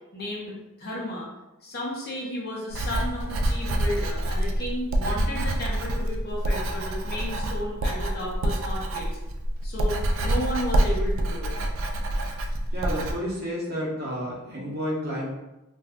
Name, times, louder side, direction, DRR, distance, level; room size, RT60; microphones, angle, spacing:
voice 1, 0.1-1.3 1.6-9.2 9.6-11.5, left 1 dB, 50° left, -4 dB, 0.8 m, -33 dB
Writing, 2.7-13.1, right 1 dB, 70° right, 0.4 m, -27 dB
voice 2, 12.7-15.3, equal, 50° right, -5 dB, 0.9 m, -30 dB
2.5 x 2.3 x 3.5 m, 0.97 s
head